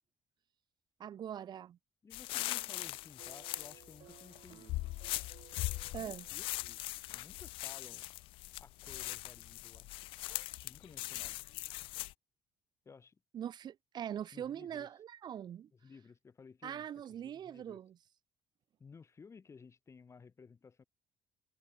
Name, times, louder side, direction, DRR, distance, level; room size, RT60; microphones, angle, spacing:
voice 1, 1.0-1.8 5.9-6.2 13.3-15.7 16.6-18.0, right 9 dB, 55° right, 1.0 m, -42 dB
voice 2, 2.0-4.9 6.0-8.1 8.6-10.1 10.5-11.4 12.9-13.2 14.3-14.9 15.7-16.9 17.2-17.8 18.8-20.8, left 5 dB, 30° left, 1.6 m, -56 dB
sound 1, 2.1-12.1, left 19 dB, 85° left, 0.6 m, -41 dB
sound 2, 2.4-6.8, right 14 dB, 75° right, 3.5 m, -60 dB
cardioid pair, 90°, 9 cm